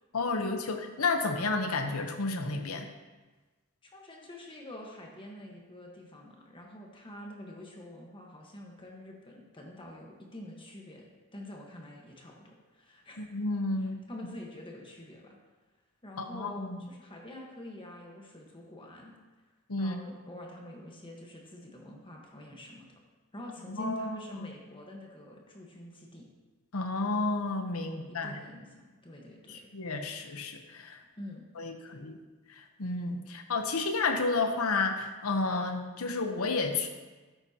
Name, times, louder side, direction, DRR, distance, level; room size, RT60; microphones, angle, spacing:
voice 1, 0.1-2.9 13.2-13.9 16.2-16.8 19.7-20.0 23.7-24.5 26.7-28.4 29.5-31.0 31.6-32.2 32.6-36.9, left 3 dB, 75° left, 5 dB, 0.9 m, -31 dB
voice 2, 3.8-13.2 14.1-15.4 16.0-19.1 19.8-22.9 23.3-26.3 27.9-29.7 31.2-31.4, left 1 dB, 25° left, -1 dB, 1.3 m, -46 dB
12.5 x 8.8 x 2.9 m, 1.3 s
head